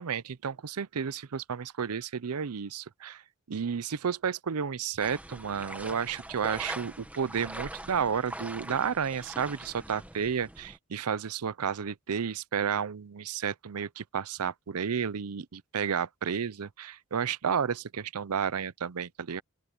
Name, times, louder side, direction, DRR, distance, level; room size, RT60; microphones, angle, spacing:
voice 1, 0.0-3.2 3.5-19.4, right 7 dB, 85° right, 0.6 m, -32 dB
sound 1, 5.0-10.8, right 1 dB, 5° right, 1.7 m, -42 dB
open air
head